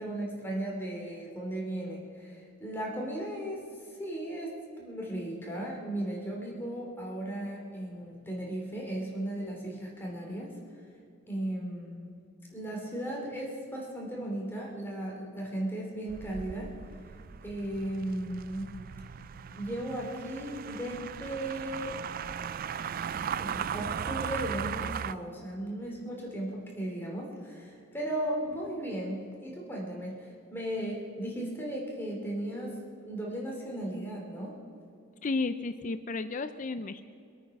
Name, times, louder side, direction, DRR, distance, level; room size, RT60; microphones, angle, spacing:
voice 1, 0.0-3.6 3.9-10.6 11.3-12.1 12.5-16.7 17.4-18.7 19.5-22.0 23.1-32.8 33.0-34.6, right 1 dB, 10° left, -2 dB, 2.9 m, -36 dB
sound 1, 16.1-25.1, right 7 dB, 40° right, 0.3 m, -37 dB
voice 2, 35.2-37.0, left 3 dB, 35° left, 11 dB, 0.4 m, -32 dB
24.5 x 9.0 x 5.9 m, 2.4 s
head